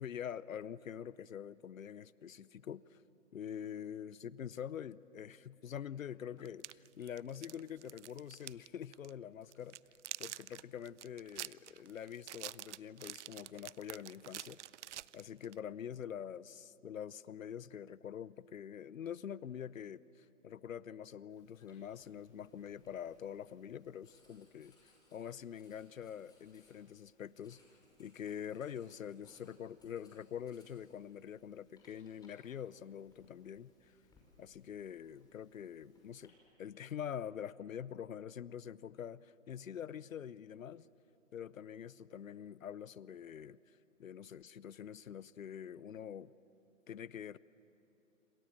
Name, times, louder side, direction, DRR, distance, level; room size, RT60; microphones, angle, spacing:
voice 1, 0.0-3.0 3.3-9.8 10.2-14.6 15.1-27.6 28.0-33.7 34.4-36.3 36.6-40.9 41.3-43.6 44.0-46.3 46.9-47.4, left 9 dB, 85° left, 20 dB, 0.8 m, -45 dB
sound 1, 6.5-8.7 8.9-9.1 9.5-15.6, right 12 dB, 60° right, 0.6 m, -47 dB
Writing, 21.3-36.3, left 2 dB, 10° left, 6.1 m, -70 dB
27.5 x 27.0 x 7.4 m, 2.9 s
hypercardioid pair, 135°, 39 cm